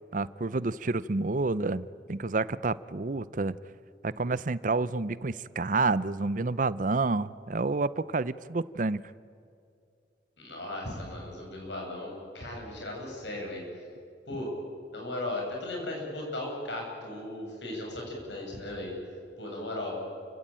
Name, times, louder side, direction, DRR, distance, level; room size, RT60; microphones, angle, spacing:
voice 1, 0.1-3.6 4.0-9.1, right 3 dB, 45° right, 17 dB, 0.6 m, -29 dB
voice 2, 10.4-13.6 14.3-14.5 14.9-18.9 19.4-20.0, left 1 dB, 85° left, -1 dB, 8.0 m, -36 dB
29.0 x 17.0 x 8.9 m, 2.4 s
head